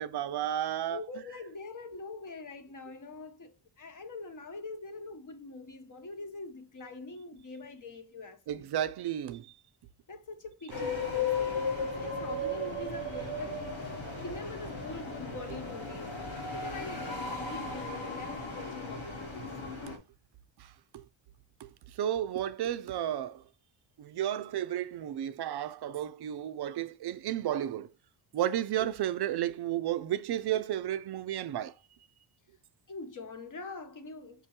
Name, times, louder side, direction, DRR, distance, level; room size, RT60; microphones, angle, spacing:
voice 1, 0.0-1.0 8.5-9.6 19.9-20.0 20.6-21.0 21.6-23.4 24.0-27.9 28.3-31.8, right 11 dB, 60° right, 0.5 m, -33 dB
voice 2, 0.9-8.7 10.1-13.6 14.2-19.5 32.9-34.5, left 3 dB, 40° left, 1.0 m, -44 dB
sound 1, 10.7-20.0, left 3 dB, 85° left, 1.6 m, -36 dB
5.5 x 2.2 x 4.2 m
wide cardioid pair, 125°, 46 cm